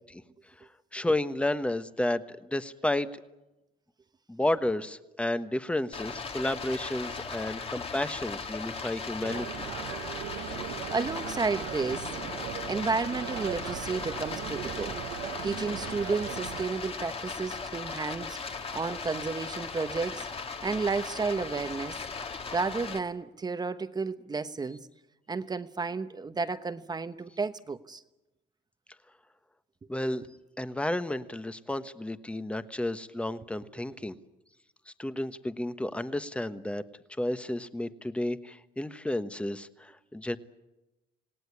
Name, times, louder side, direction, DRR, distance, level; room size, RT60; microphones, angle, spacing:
voice 1, 0.9-3.1 4.3-9.6 29.9-30.2 30.6-34.1 34.9-36.8 37.2-40.4, left 1 dB, 5° left, 12 dB, 1.2 m, -32 dB
Stream, 5.9-23.0, left 5 dB, 35° left, 2.0 m, -38 dB
sound 1, 9.2-16.7, right 11 dB, 85° right, 1.5 m, -39 dB
voice 2, 10.9-12.1 12.7-15.0 15.4-20.3 20.6-22.0 22.5-24.8 25.3-28.0, right 4 dB, 25° right, 11 dB, 1.1 m, -32 dB
27.0 x 18.5 x 9.8 m, 1.0 s
cardioid pair, 110°, 17 cm